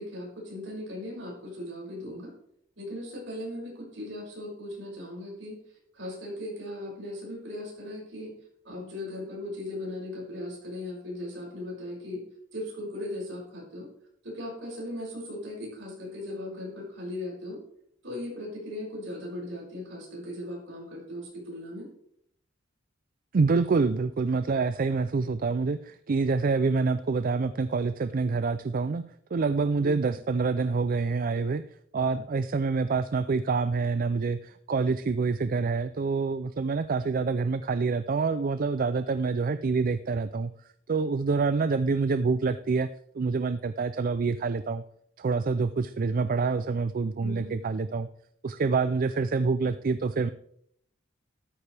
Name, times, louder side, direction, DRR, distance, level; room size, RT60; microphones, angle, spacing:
voice 1, 0.0-2.3 2.8-5.6 5.9-8.3 8.6-12.2 12.5-13.9 14.2-17.6 18.0-21.9 29.8-30.1 47.2-47.5 47.8-47.9, left 1 dB, 65° right, -2 dB, 6.2 m, -38 dB
voice 2, 23.3-29.0 29.3-31.6 31.9-40.5 40.9-42.9 43.1-44.8 45.2-48.1 48.4-50.3, right 4 dB, 45° right, 13 dB, 0.4 m, -26 dB
13.5 x 13.0 x 3.4 m, 0.69 s
head